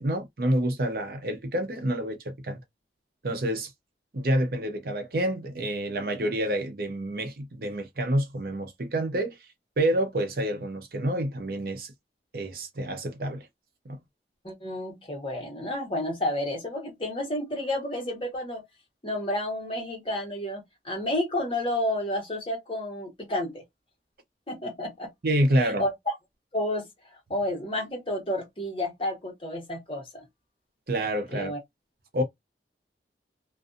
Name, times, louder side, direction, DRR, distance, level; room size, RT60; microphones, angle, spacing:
voice 1, 0.0-2.6 3.2-3.7 4.1-9.4 9.8-11.9 12.3-13.5 13.9-14.0 25.2-25.9 30.9-31.5 32.1-32.2, right 1 dB, 55° right, 0.6 m, -28 dB
voice 2, 14.4-18.6 19.0-23.6 24.5-25.1 25.6-26.1 26.5-26.9 27.3-30.2 31.3-31.6, left 1 dB, 30° left, 1.0 m, -31 dB
2.5 x 2.3 x 2.5 m
head